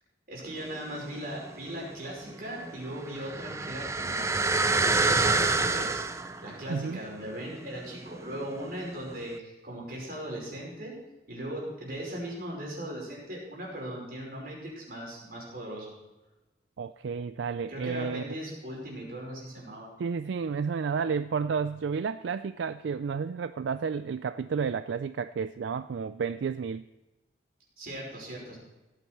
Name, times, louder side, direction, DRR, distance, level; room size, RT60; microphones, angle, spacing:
voice 1, 0.3-4.5 4.8-6.0 6.4-11.0 11.3-15.9 17.7-19.9 27.8-28.6, right 1 dB, 50° right, -3 dB, 5.5 m, -38 dB
sound 1, 0.6-1.4 1.7-8.8 9.3-9.4, right 3 dB, 15° right, 0.5 m, -28 dB
voice 2, 6.7-7.0 16.8-18.2 20.0-26.8, right 5 dB, 80° right, 13 dB, 0.4 m, -31 dB
17.0 x 9.2 x 4.7 m, 1.1 s
head